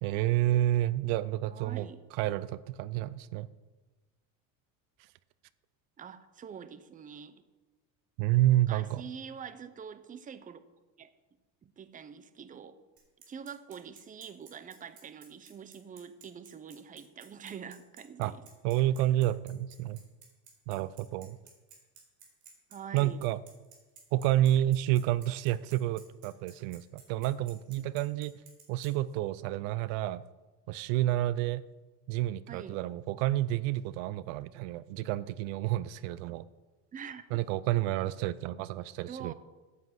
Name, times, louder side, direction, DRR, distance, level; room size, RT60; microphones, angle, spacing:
voice 1, 0.0-1.9 2.2-3.5 8.2-9.0 18.2-18.3 18.6-20.0 20.7-21.4 22.9-23.4 24.1-28.3 28.7-30.2 30.7-31.6 32.1-36.5 37.3-39.3, right 14 dB, 75° right, 18 dB, 0.6 m, -29 dB
voice 2, 1.5-2.0 6.0-7.4 8.7-10.6 11.0-11.1 11.6-12.8 13.3-18.4 22.7-23.2 32.5-32.8 36.9-37.4 39.1-39.3, right 7 dB, 20° right, 12 dB, 0.7 m, -45 dB
Bicycle, 13.0-28.9, right 6 dB, 50° right, 4.2 m, -54 dB
9.6 x 8.5 x 7.5 m, 1.2 s
cardioid pair, 135°, 39 cm